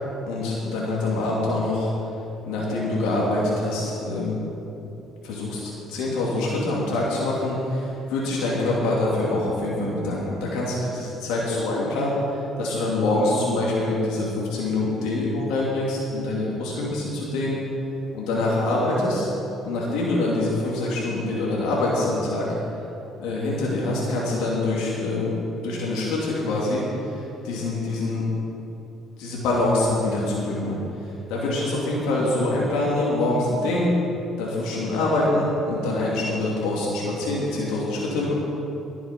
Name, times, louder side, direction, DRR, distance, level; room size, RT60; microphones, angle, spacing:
voice 1, 0.3-1.9 2.5-4.4 5.2-17.6 18.1-19.3 19.6-22.5 23.2-25.3 25.6-28.3 29.2-30.8 31.3-33.9 34.4-38.3, left 2 dB, 85° left, -5 dB, 2.7 m, -25 dB
19.5 x 7.1 x 5.2 m, 2.9 s
supercardioid pair, 85°, 0 cm